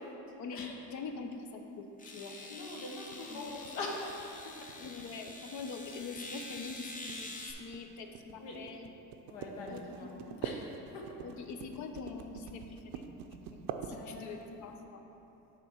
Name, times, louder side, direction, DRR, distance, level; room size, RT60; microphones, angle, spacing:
voice 1, 0.4-2.4 3.3-3.4 4.8-8.9 9.7-10.4 11.2-13.0 13.5-15.0, left 4 dB, 55° left, 5 dB, 0.7 m, -44 dB
sound 1, 1.1-1.2 2.0-7.5, left 2 dB, 25° left, 0.8 m, -46 dB
voice 2, 2.4-4.7 8.4-8.6 9.3-11.1 13.9-15.0, left 2 dB, 75° left, -1 dB, 1.3 m, -43 dB
sound 2, 3.5-14.5, right 7 dB, 70° right, 0.6 m, -45 dB
6.7 x 3.9 x 6.2 m, 3.0 s
cardioid pair, 110°, 35 cm